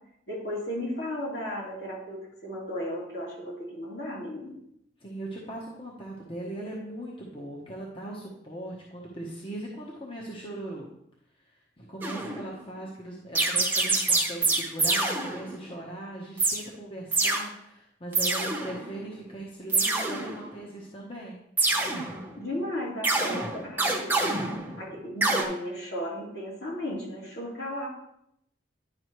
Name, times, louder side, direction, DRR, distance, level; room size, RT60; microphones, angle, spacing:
voice 1, 0.3-4.6 22.4-24.3 24.8-27.9, equal, 60° left, -5 dB, 3.0 m, -35 dB
voice 2, 5.0-10.9 11.8-21.4, right 1 dB, 30° left, -3 dB, 1.1 m, -39 dB
sound 1, 12.0-12.6 13.3-15.7 16.4-16.6 17.1-17.5 18.1-19.0 19.7-20.6 21.6-22.4 23.0-24.9 25.2-25.4, right 3 dB, 10° right, 0.9 m, -26 dB
10.5 x 5.5 x 3.1 m, 0.76 s
head